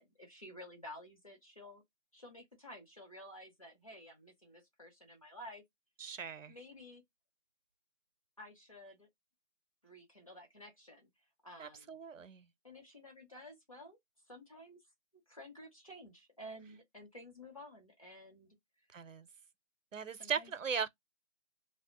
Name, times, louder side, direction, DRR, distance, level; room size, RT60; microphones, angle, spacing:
voice 1, 0.0-1.8 2.1-5.6 6.5-7.0 8.4-9.1 9.8-11.1 11.4-12.0 12.6-14.0 14.3-14.8 15.3-18.5 20.2-20.5, left 1 dB, 25° left, 0.7 m, -52 dB
voice 2, 6.0-6.5 11.6-12.5 18.9-19.3 19.9-20.9, right 7 dB, 75° right, 0.6 m, -38 dB
2.6 x 2.0 x 3.7 m
figure-of-eight pair, 160°, 38 cm